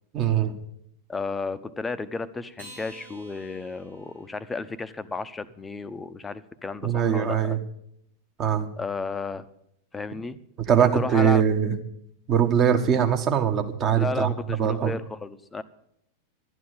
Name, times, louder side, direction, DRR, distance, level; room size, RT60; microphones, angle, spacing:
voice 1, 0.1-0.5 6.8-7.6 8.4-8.7 10.6-11.7 12.3-14.3 14.6-14.9, right 8 dB, 30° right, 5 dB, 1.7 m, -22 dB
voice 2, 1.1-7.5 8.8-9.5 9.9-10.4 10.8-11.4 14.0-15.6, left 3 dB, 10° left, 13 dB, 0.8 m, -33 dB
Acoustic guitar, 2.5-5.2, right 2 dB, 85° right, 7.1 m, -49 dB
12.5 x 9.6 x 8.9 m, 0.72 s
figure-of-eight pair, 90°, 0 cm